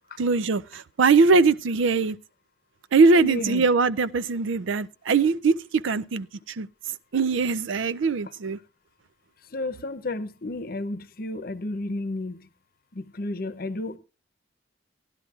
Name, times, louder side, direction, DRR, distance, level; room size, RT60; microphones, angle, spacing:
voice 1, 0.2-2.2 2.9-6.7 7.1-8.6, right 4 dB, 85° right, 0.5 m, -21 dB
voice 2, 3.1-3.6 9.5-12.5 12.9-14.0, left 2 dB, 50° left, 0.8 m, -32 dB
18.0 x 11.5 x 2.4 m
head